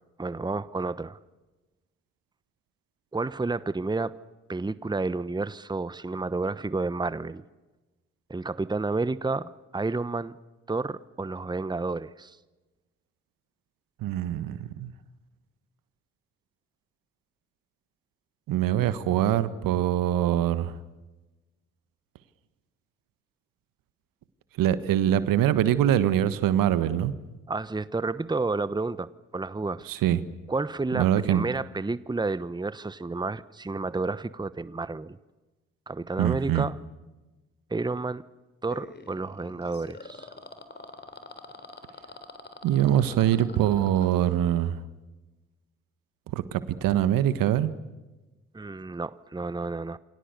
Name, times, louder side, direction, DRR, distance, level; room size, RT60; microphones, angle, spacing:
voice 1, 0.2-1.2 3.1-4.1 4.5-7.4 8.3-10.3 10.7-12.4 27.5-29.9 30.5-35.2 35.9-36.8 37.7-38.2 38.6-40.3 48.5-50.0, right 3 dB, 10° right, 16 dB, 1.0 m, -30 dB
voice 2, 14.0-14.9 18.5-20.8 24.6-27.1 29.9-30.2 30.9-31.4 36.2-36.7 42.6-44.8 46.3-47.7, right 11 dB, 65° right, 14 dB, 1.5 m, -24 dB
sound 1, 38.7-44.3, left 3 dB, 30° left, 3.5 m, -45 dB
28.5 x 25.0 x 6.8 m, 1.1 s
hypercardioid pair, 40°, 36 cm